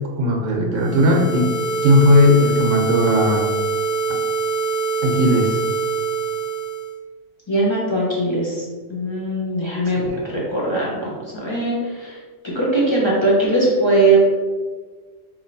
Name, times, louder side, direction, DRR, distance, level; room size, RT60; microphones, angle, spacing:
voice 1, 0.2-1.5 1.8-3.5 5.0-5.6 9.9-10.2, left 1 dB, 75° right, 1 dB, 1.1 m, -17 dB
sound 1, 0.8-6.9, right 4 dB, 60° left, 0.9 m, -24 dB
voice 2, 7.5-8.6 8.9-10.0 10.5-12.2 12.5-14.2, right 2 dB, 25° left, -6 dB, 0.8 m, -20 dB
3.1 x 3.0 x 3.9 m, 1.4 s
omnidirectional pair, 1.3 m